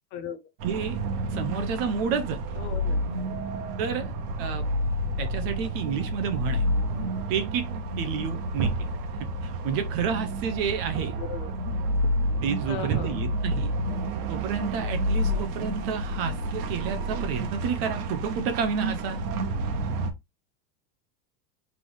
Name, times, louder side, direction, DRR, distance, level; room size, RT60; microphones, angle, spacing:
voice 1, 0.6-1.0 1.3-2.4 3.8-4.1 4.4-4.6 5.2-6.6 7.3-7.7 8.0-8.7 9.4-11.2 12.4-13.7 14.3-19.2, right 6 dB, 35° right, 0.6 m, -30 dB
sound 1, 0.6-20.1, right 1 dB, 65° right, 1.2 m, -29 dB
voice 2, 2.6-3.0 11.0-11.5 12.7-13.2 15.3-15.4, left 8 dB, 25° left, 0.5 m, -37 dB
4.0 x 3.4 x 3.1 m
supercardioid pair, 170°, 50 cm